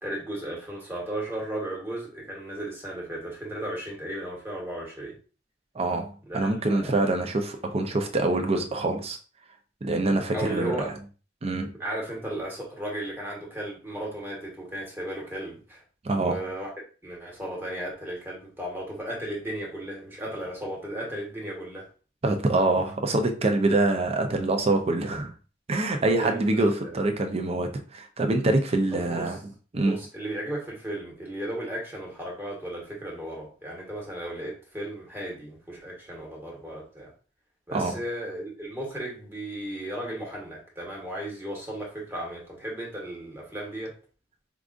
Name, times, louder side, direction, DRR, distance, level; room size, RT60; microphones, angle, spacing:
voice 1, 0.0-5.2 6.3-7.0 10.3-11.0 11.8-15.8 16.1-16.7 17.0-21.9 26.0-27.0 28.9-29.4 29.8-37.1 37.7-43.9, right 1 dB, 10° right, -3 dB, 1.2 m, -35 dB
voice 2, 5.7-9.2 9.8-10.8 11.4-11.7 16.0-16.4 22.2-25.3 25.7-29.4 29.7-30.0 37.7-37.9, right 2 dB, 30° right, 5 dB, 0.5 m, -25 dB
4.8 x 2.4 x 2.4 m, 0.37 s
head